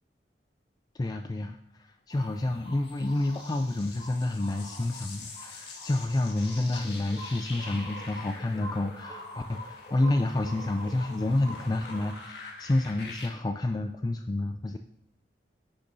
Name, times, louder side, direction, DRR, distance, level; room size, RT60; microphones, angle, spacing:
voice 1, 0.9-14.8, left 2 dB, 20° left, 5 dB, 0.3 m, -29 dB
sound 1, 2.1-12.1, left 1 dB, 55° left, 2.5 m, -46 dB
sound 2, 2.6-13.3, left 3 dB, 75° left, 1.8 m, -46 dB
9.9 x 6.6 x 2.7 m, 0.82 s
head